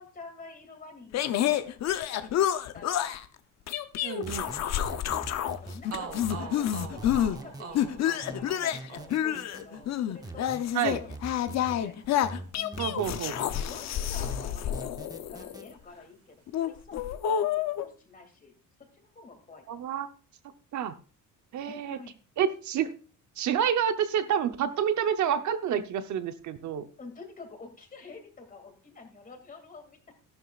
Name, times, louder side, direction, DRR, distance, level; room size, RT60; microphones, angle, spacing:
voice 1, 0.0-3.2 4.2-12.0 12.5-15.0 15.3-17.0 17.4-18.5 18.9-19.9 21.6-22.2 27.0-30.1, left 3 dB, 25° left, 4 dB, 2.4 m, -48 dB
sound 1, 1.1-3.2 3.7-5.6 5.8-7.4 7.7-15.7 16.5-17.9, left 10 dB, 55° left, 0.7 m, -29 dB
voice 2, 4.0-4.4 10.7-11.0 12.8-13.3 19.7-20.1 20.7-20.9 21.5-22.0 22.4-22.9 23.4-26.9, right 8 dB, 60° right, 9 dB, 0.9 m, -28 dB
sound 2, 4.2-5.8 6.2-7.7 8.2-9.6 10.2-11.8 12.2-13.7 14.2-15.6, right 2 dB, 10° right, 0.8 m, -42 dB
sound 3, 5.9-13.8 14.0-15.2, right 6 dB, 45° right, 1.6 m, -46 dB
12.5 x 11.5 x 2.4 m, 0.36 s
cardioid pair, 150°, 32 cm